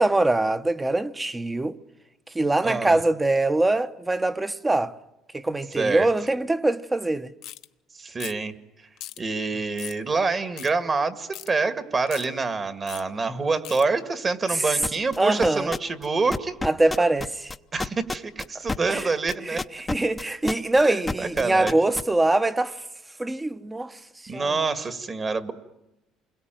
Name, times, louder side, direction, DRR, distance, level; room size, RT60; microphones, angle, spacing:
voice 1, 0.0-1.8 2.3-4.9 5.3-7.3 15.2-15.7 16.6-17.5 18.9-19.1 19.5-19.6 19.9-22.8 23.2-23.9 24.3-24.5, right 2 dB, 15° right, 1.1 m, -23 dB
voice 2, 2.6-3.0 5.8-6.1 7.9-8.5 9.2-16.6 17.7-19.6 20.8-21.8 24.3-25.5, right 4 dB, 30° right, 2.0 m, -26 dB
sound 1, 7.4-7.7 8.2-8.5 9.0-9.2 9.8-10.0 10.6-10.7 11.3-11.5 12.1-12.3 12.9-13.0 13.6-13.8, left 14 dB, 70° left, 1.0 m, -39 dB
sound 2, 14.8-15.2 15.4-16.1 16.3-22.0, left 3 dB, 15° left, 0.9 m, -29 dB
28.5 x 22.0 x 9.2 m
cardioid pair, 110°, 0 cm